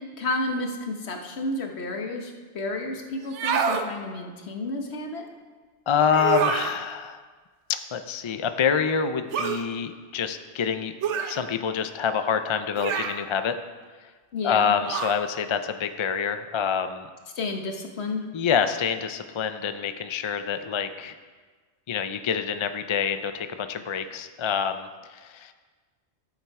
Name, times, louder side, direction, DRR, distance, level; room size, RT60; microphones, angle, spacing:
voice 1, 0.2-5.2 14.3-14.7 17.4-18.2, left 2 dB, 70° left, 3 dB, 1.4 m, -31 dB
sound 1, 3.2-3.9 6.1-6.8 9.3-9.6 11.0-11.4 12.8-13.2 14.9-15.2, right 7 dB, 85° right, 1.0 m, -27 dB
voice 2, 5.9-7.2 7.7-10.9 11.3-13.6 14.4-17.1 18.3-21.2 21.9-25.5, left 7 dB, 50° left, 9 dB, 0.3 m, -26 dB
12.5 x 7.3 x 4.7 m, 1.4 s
omnidirectional pair, 1.2 m